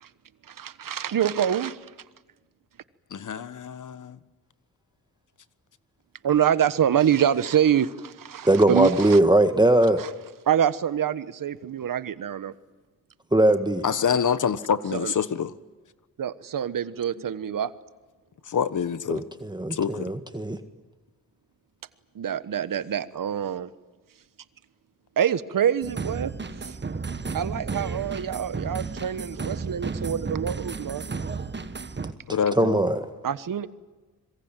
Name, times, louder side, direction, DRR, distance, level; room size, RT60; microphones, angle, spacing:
voice 1, 0.5-1.8 6.2-9.2 10.0-10.1 10.5-12.5 14.9-15.1 16.2-17.7 22.1-23.7 25.2-26.3 26.6-26.7 27.3-31.0 33.2-33.7, right 9 dB, 65° right, 1.3 m, -25 dB
voice 2, 3.1-4.2 13.8-15.5 18.5-19.2 19.7-20.0 32.3-32.8, left 7 dB, 60° left, 1.3 m, -26 dB
voice 3, 8.5-10.0 13.3-13.8 19.1-20.6 32.6-33.1, right 1 dB, 10° right, 1.8 m, -20 dB
sound 1, 25.8-32.1, right 4 dB, 30° right, 1.6 m, -33 dB
26.0 x 22.5 x 9.2 m
cardioid pair, 60°, 35 cm